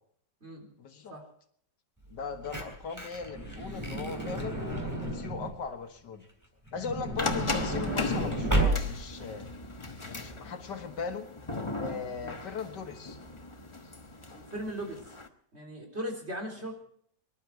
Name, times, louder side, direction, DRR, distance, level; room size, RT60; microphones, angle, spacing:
voice 1, 0.8-1.2 2.1-4.7 5.0-6.3 6.7-9.5 10.0-11.3 11.8-13.2 16.6-16.7, left 5 dB, 80° left, 6 dB, 2.1 m, -39 dB
Truck / Door, 2.1-5.6 6.7-9.2 9.9-10.0 10.2-10.3, right 1 dB, 10° right, 3.2 m, -32 dB
sound 1, 7.2-15.3, left 3 dB, 20° left, 0.9 m, -37 dB
voice 2, 14.3-15.0 15.5-16.7, equal, 35° right, 1 dB, 3.9 m, -38 dB
24.0 x 12.0 x 4.7 m, 0.64 s
omnidirectional pair, 1.9 m